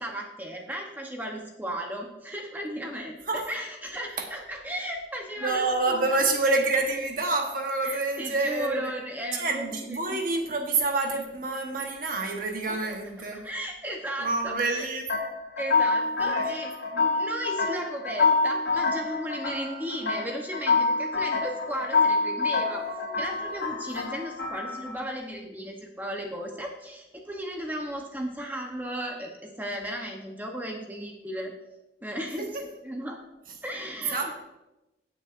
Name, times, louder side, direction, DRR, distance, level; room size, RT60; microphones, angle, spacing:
voice 1, 0.0-6.2 7.8-10.2 12.7-13.0 13.3-14.8 15.6-16.7 17.1-31.5 32.0-32.5 32.8-33.2 33.6-34.3, equal, 10° right, 1 dB, 0.9 m, -35 dB
voice 2, 5.4-8.9 9.3-13.5 14.2-15.1 16.2-17.1 22.7-23.6 32.2-32.4 34.1-34.4, right 3 dB, 50° right, 2 dB, 1.2 m, -28 dB
sound 1, 15.1-25.0, left 4 dB, 90° left, 2.1 m, -27 dB
17.5 x 6.4 x 2.6 m, 0.97 s
head